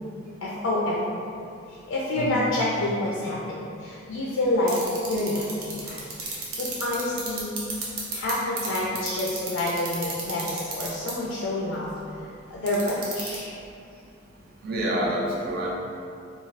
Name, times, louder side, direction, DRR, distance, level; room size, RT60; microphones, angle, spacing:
voice 1, 0.4-1.2 1.7-4.8 5.1-7.6 8.1-11.9 12.2-13.5, left 1 dB, 65° left, -5 dB, 0.3 m, -28 dB
voice 2, 2.2-2.5 14.6-15.7, right 1 dB, 45° right, -4 dB, 0.4 m, -27 dB
sound 1, 4.7-8.3 8.6-11.1 12.7-13.4, right 6 dB, 85° right, 0.6 m, -31 dB
2.4 x 2.3 x 3.1 m, 2.5 s
head